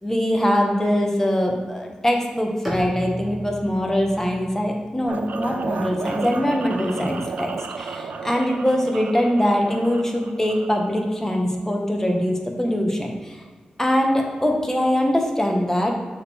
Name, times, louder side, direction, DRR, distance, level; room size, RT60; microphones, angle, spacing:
voice 1, 0.0-7.5 7.8-13.4 13.8-16.0, equal, 15° left, 1 dB, 1.3 m, -22 dB
Bowed string instrument, 2.6-6.6, equal, 5° right, 1.8 m, -36 dB
sound 1, 5.1-11.0, right 4 dB, 85° right, 0.4 m, -33 dB
6.4 x 3.8 x 4.6 m, 1.5 s
cardioid pair, 45°, 3 cm